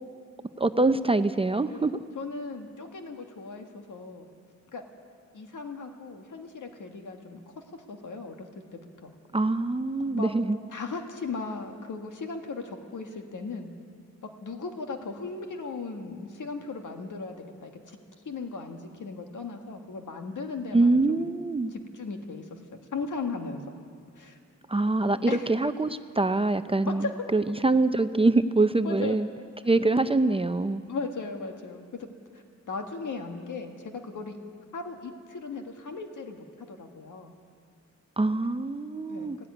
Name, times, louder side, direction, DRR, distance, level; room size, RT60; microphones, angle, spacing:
voice 1, 0.6-2.0 9.3-10.6 20.7-21.7 24.7-29.3 29.6-30.8 38.2-39.4, right 2 dB, 20° right, 10 dB, 0.5 m, -24 dB
voice 2, 2.2-4.3 4.7-4.8 5.3-7.4 7.7-8.5 8.7-9.1 10.1-10.3 10.7-13.7 14.4-17.4 17.6-21.3 21.7-22.6 22.9-23.7 24.2-24.4 25.3-25.5 26.9-27.1 28.8-29.2 29.6-29.8 30.8-34.4 34.7-37.3 39.1-39.3, left 4 dB, 85° left, 4 dB, 1.8 m, -37 dB
18.0 x 17.0 x 9.5 m, 2.2 s
wide cardioid pair, 155°, 30 cm